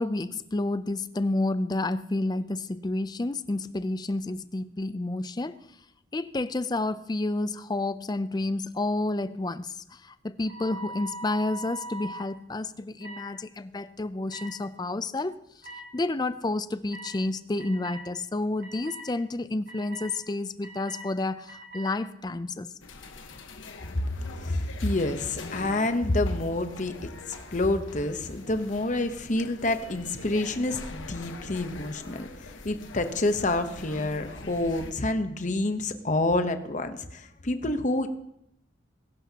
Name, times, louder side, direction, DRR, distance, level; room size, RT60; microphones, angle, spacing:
voice 1, 0.0-5.6 6.1-15.4 15.9-22.7, left 2 dB, 20° left, 14 dB, 0.4 m, -30 dB
sound 1, 10.4-12.2 13.0-13.2 14.3-14.5 15.6-15.8 16.9-17.1 17.6-18.0 18.6-19.0 19.7-20.1 20.6-21.1 21.5-21.9, right 1 dB, 45° right, 2.3 m, -41 dB
sound 2, 22.8-34.9, left 3 dB, 80° left, 1.2 m, -44 dB
voice 2, 24.4-38.1, left 2 dB, 40° left, 8 dB, 0.9 m, -28 dB
21.5 x 12.0 x 2.9 m, 0.80 s
head